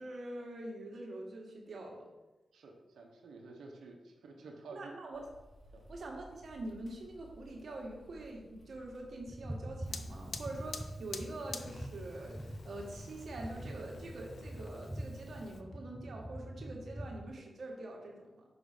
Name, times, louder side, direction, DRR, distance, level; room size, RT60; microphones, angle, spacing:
voice 1, 0.0-2.1 4.7-5.2 5.9-18.4, right 2 dB, 65° right, 0 dB, 1.6 m, -45 dB
voice 2, 2.5-4.9 5.7-5.8, right 3 dB, 85° right, 1 dB, 1.0 m, -51 dB
sound 1, 5.1-10.9, left 1 dB, 35° left, 1.9 m, -58 dB
sound 2, 9.3-17.3, right 1 dB, 5° right, 0.5 m, -45 dB
Fire, 9.9-15.6, left 4 dB, 65° left, 0.5 m, -48 dB
6.1 x 3.9 x 5.0 m, 1.1 s
cardioid pair, 60°, 0 cm